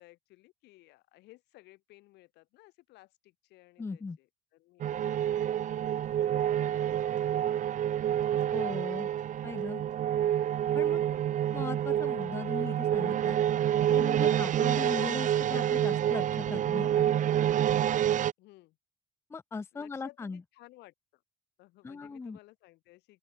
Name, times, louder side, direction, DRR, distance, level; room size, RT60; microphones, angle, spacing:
voice 1, 0.0-8.3 10.4-10.7 11.1-11.4 18.4-18.8 19.7-21.2 21.6-23.2, left 19 dB, 85° left, 5.1 m, -58 dB
voice 2, 3.8-4.2 8.5-9.1 9.4-9.8 10.7-11.0 11.5-13.4 13.9-17.1 19.3-20.4 21.8-22.4, left 4 dB, 15° left, 0.4 m, -38 dB
sound 1, 4.8-18.3, right 10 dB, 50° right, 0.8 m, -28 dB
open air
cardioid pair, 110°, 17 cm